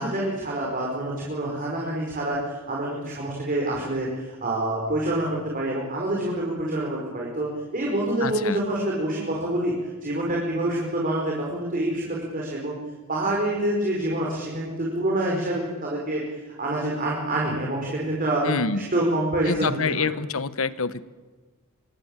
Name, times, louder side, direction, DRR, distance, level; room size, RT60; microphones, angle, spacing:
voice 1, 0.0-5.3 5.5-9.8 10.0-12.8 13.1-16.2 16.6-20.1, right 1 dB, 40° right, -3 dB, 5.1 m, -27 dB
voice 2, 8.2-8.6 18.4-18.9 19.5-21.0, left 4 dB, 70° left, 15 dB, 1.1 m, -26 dB
24.5 x 22.5 x 9.0 m, 1.3 s
head